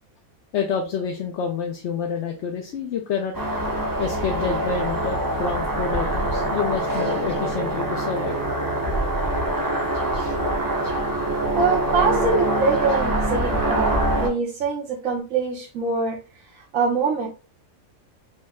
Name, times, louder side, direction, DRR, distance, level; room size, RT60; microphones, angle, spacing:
voice 1, 0.5-3.3 4.0-8.4 10.1-10.3, left 6 dB, 65° left, 2 dB, 0.9 m, -28 dB
sound 1, 3.3-14.3, right 1 dB, 20° right, 0.5 m, -24 dB
voice 2, 11.6-16.2 16.7-17.3, right 4 dB, 75° right, -2 dB, 1.3 m, -24 dB
5.4 x 2.1 x 3.4 m, 0.32 s
omnidirectional pair, 1.4 m